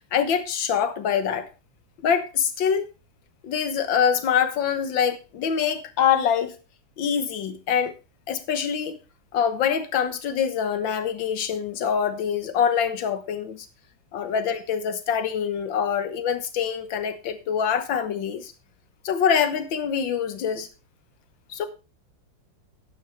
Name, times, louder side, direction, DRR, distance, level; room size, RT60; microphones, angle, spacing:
voice 1, 0.1-1.5 2.0-2.9 3.4-6.5 7.0-7.9 8.3-9.0 9.3-13.7 14.1-18.5 19.0-20.7 21.5-21.7, left 7 dB, 80° left, 1.9 m, -24 dB
12.5 x 9.2 x 3.3 m
omnidirectional pair, 2.1 m